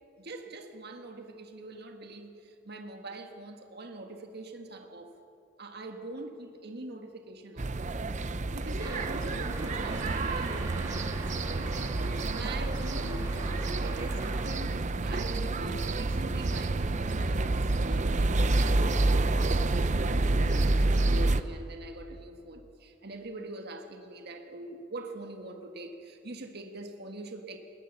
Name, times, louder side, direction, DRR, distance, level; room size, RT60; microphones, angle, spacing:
voice 1, 0.2-5.1 5.6-7.7 8.5-11.2 12.3-27.6, right 2 dB, 55° right, 4 dB, 1.6 m, -43 dB
sound 1, 7.6-21.4, right 2 dB, 40° right, 0.7 m, -28 dB
sound 2, 8.8-14.5, right 3 dB, 20° right, 2.5 m, -43 dB
20.5 x 19.0 x 7.1 m, 2.7 s
head